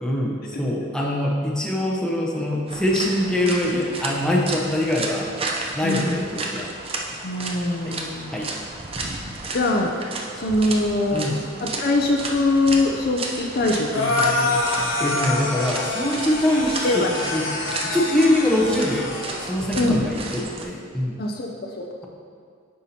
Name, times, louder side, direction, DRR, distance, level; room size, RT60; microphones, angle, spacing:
voice 1, 0.0-5.3 5.7-6.7 7.8-8.0 8.3-8.5 11.1-11.4 15.0-17.5 17.8-19.1 19.5-21.2, left 1 dB, 5° left, -3 dB, 0.8 m, -23 dB
sound 1, 2.7-20.6, right 2 dB, 30° right, 0.6 m, -33 dB
voice 2, 5.8-6.2 7.2-8.3 9.5-9.9 10.3-11.3 11.6-14.9 16.8-17.1 19.7-20.1 21.2-22.0, left 2 dB, 50° left, 1 dB, 0.5 m, -23 dB
sound 2, 13.9-19.5, left 2 dB, 70° left, 1.1 m, -26 dB
9.0 x 5.6 x 2.8 m, 2.2 s
head